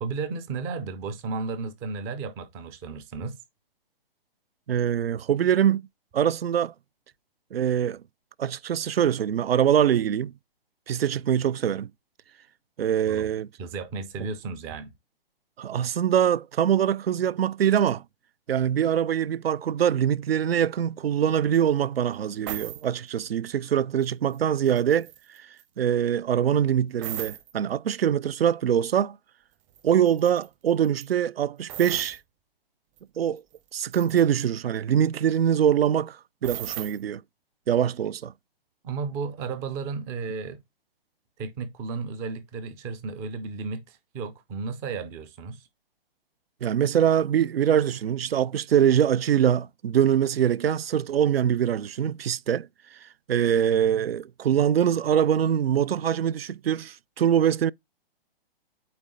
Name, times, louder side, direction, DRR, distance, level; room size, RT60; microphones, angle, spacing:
voice 1, 0.0-3.4 13.1-13.3 13.6-14.9 38.8-40.6 41.4-45.7, right 4 dB, 10° right, 0.3 m, -34 dB
voice 2, 4.7-5.8 6.1-6.7 7.5-8.0 8.4-10.3 10.9-11.9 12.8-13.5 15.6-18.0 18.5-25.1 25.4-25.5 25.8-29.2 29.8-32.2 33.2-33.4 33.7-36.2 36.4-37.2 37.7-38.3 46.6-52.7 53.3-57.7, right 9 dB, 85° right, 0.5 m, -23 dB
sound 1, 21.5-21.6 22.5-22.8 24.0-24.4 24.7-25.6 27.0-27.5 29.8-29.9 30.1-30.5 30.8-31.1 31.7-32.2 33.0-33.1 33.4-34.2 36.4-37.0, right 12 dB, 30° right, 0.8 m, -37 dB
8.6 x 3.3 x 3.9 m
hypercardioid pair, 135°, 29 cm